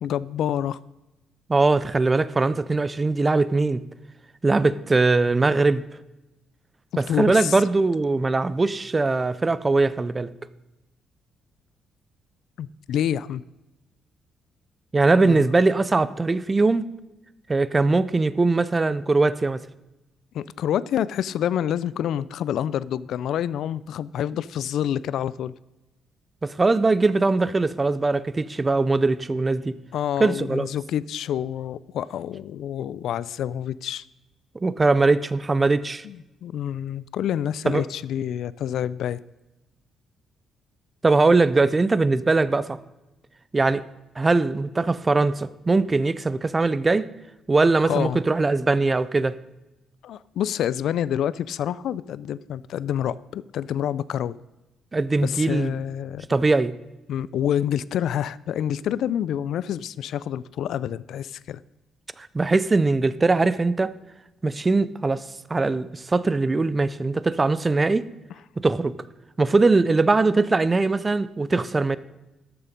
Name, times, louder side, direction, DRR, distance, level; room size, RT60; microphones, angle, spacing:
voice 1, 0.0-0.8 6.9-7.6 12.6-13.4 15.2-15.5 20.3-25.5 29.9-34.0 36.0-39.2 47.8-48.2 50.0-54.4 55.2-56.3 57.1-61.6, left 10 dB, 65° left, 0.3 m, -27 dB
voice 2, 1.5-3.8 4.4-5.8 7.0-10.3 14.9-16.8 17.5-19.6 26.4-29.8 30.2-30.7 34.6-36.1 37.7-37.8 41.0-42.8 43.5-43.8 44.2-47.0 47.5-49.4 54.9-55.8 56.3-56.7 62.2-63.9 64.4-68.1 68.6-68.9 69.4-72.0, right 3 dB, 20° right, 0.4 m, -21 dB
13.0 x 6.9 x 5.1 m
cardioid pair, 155°, 0 cm